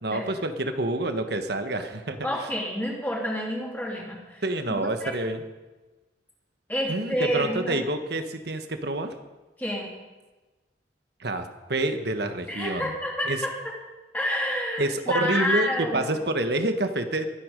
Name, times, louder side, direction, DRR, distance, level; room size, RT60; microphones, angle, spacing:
voice 1, 0.0-2.5 4.4-5.4 6.9-9.2 11.2-12.9 13.2-13.4 14.8-17.3, right 1 dB, 55° right, 7 dB, 1.4 m, -28 dB
voice 2, 2.2-4.4 4.7-5.1 6.7-7.8 9.6-9.9 12.5-13.7 14.1-16.2, equal, 10° left, -2 dB, 2.9 m, -29 dB
23.0 x 9.7 x 5.3 m, 1.2 s
head